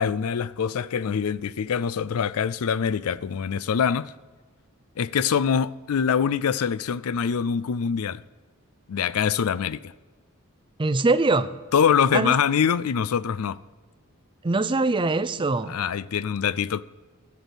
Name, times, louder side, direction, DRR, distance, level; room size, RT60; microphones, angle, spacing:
voice 1, 0.0-4.1 5.0-8.2 8.9-9.9 11.7-13.6 15.7-16.8, left 7 dB, 75° left, 0.4 m, -24 dB
voice 2, 10.8-11.5 12.1-12.3 14.4-15.8, right 3 dB, 20° right, 0.5 m, -22 dB
13.0 x 7.1 x 8.0 m
head